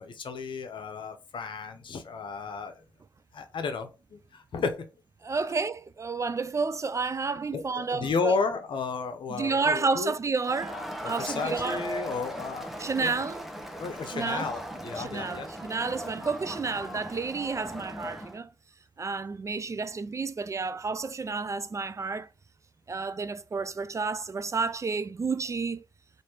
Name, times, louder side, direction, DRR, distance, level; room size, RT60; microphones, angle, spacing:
voice 1, 0.0-2.8 3.3-4.9 7.5-10.1 11.0-13.3 13.8-15.5, left 4 dB, 60° left, 0.8 m, -33 dB
voice 2, 5.2-8.4 9.3-10.8 11.0-11.8 12.8-13.4 14.1-14.5 15.0-18.5 19.0-22.3 22.9-25.8, right 4 dB, 35° right, 0.3 m, -30 dB
Crowd, 10.4-18.4, equal, ahead, 0.9 m, -38 dB
3.2 x 2.6 x 4.3 m
supercardioid pair, 50°, 9 cm